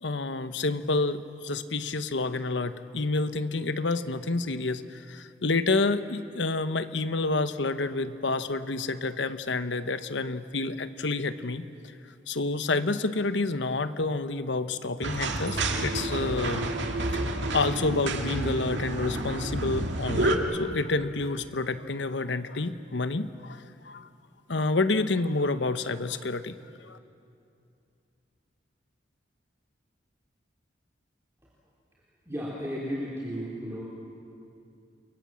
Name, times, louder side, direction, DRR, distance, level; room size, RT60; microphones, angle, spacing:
voice 1, 0.0-11.7 12.3-16.7 17.5-24.1 24.5-26.6 26.8-27.0, left 3 dB, 80° left, 11 dB, 1.0 m, -29 dB
sound 1, 15.0-20.4, right 2 dB, 85° right, 2.1 m, -29 dB
voice 2, 32.3-33.8, equal, 15° right, -7 dB, 3.7 m, -34 dB
28.5 x 23.5 x 7.6 m, 2.6 s
head